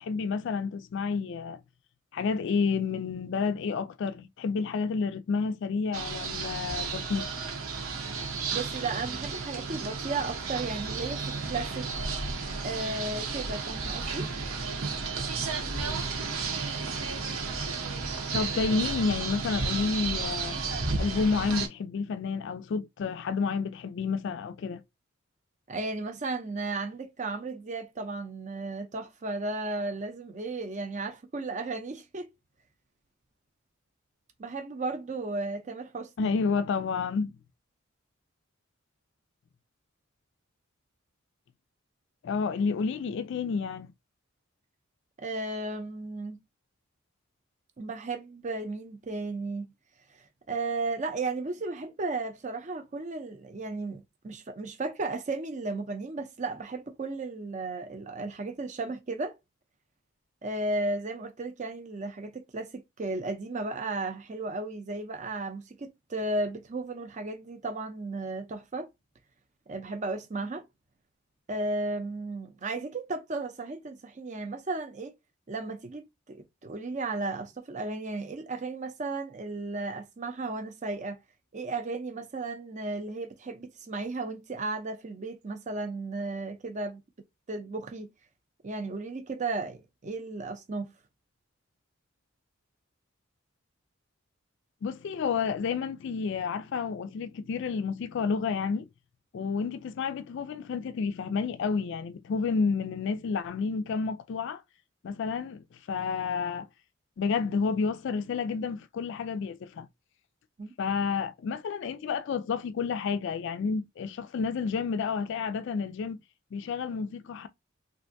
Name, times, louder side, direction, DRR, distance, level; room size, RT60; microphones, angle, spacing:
voice 1, 0.0-1.6 2.1-7.3 18.3-20.6 21.0-24.8 36.2-37.4 42.2-43.9 94.8-98.9 99.3-104.6 105.0-106.7 107.2-109.9 110.8-116.2 116.5-117.5, left 5 dB, 60° left, 0.3 m, -30 dB
sound 1, 5.9-21.7, right 4 dB, 80° right, 0.9 m, -33 dB
voice 2, 8.5-11.9 12.6-14.3 25.7-32.3 34.4-36.3 45.2-46.4 47.8-49.7 50.1-59.4 60.4-68.9 69.7-70.6 71.5-75.1 75.5-81.2 81.5-87.0 87.5-88.1 88.6-90.9 110.6-110.7, right 3 dB, 35° right, 0.5 m, -34 dB
3.4 x 2.5 x 2.6 m
head